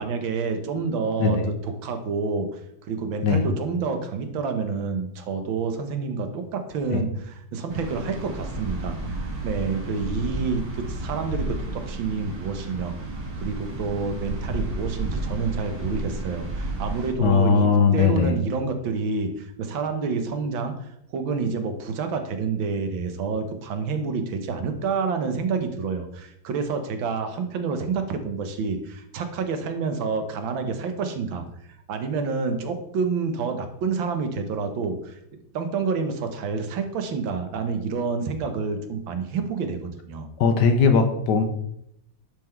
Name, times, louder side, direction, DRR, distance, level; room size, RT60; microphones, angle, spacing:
voice 1, 0.0-1.4 1.8-2.6 2.9-12.9 13.4-20.9 21.1-31.5 31.9-35.2 35.5-40.3, right 4 dB, 90° right, 7 dB, 1.8 m, -28 dB
sound 1, 7.7-17.1, right 2 dB, 50° right, 2.2 m, -32 dB
voice 2, 17.2-18.3 40.4-41.4, left 5 dB, 65° left, 6 dB, 1.4 m, -19 dB
10.5 x 3.8 x 4.5 m, 0.74 s
omnidirectional pair, 2.1 m